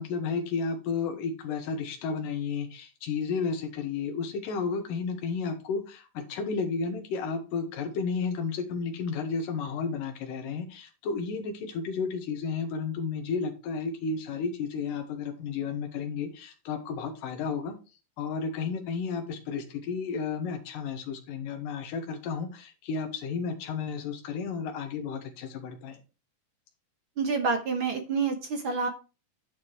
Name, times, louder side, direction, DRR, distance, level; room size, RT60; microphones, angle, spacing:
voice 1, 0.0-17.7 18.2-26.0, left 5 dB, 90° left, 4 dB, 2.8 m, -32 dB
voice 2, 27.2-28.9, right 4 dB, 70° right, 4 dB, 1.2 m, -28 dB
10.5 x 4.9 x 4.6 m, 0.31 s
omnidirectional pair, 3.8 m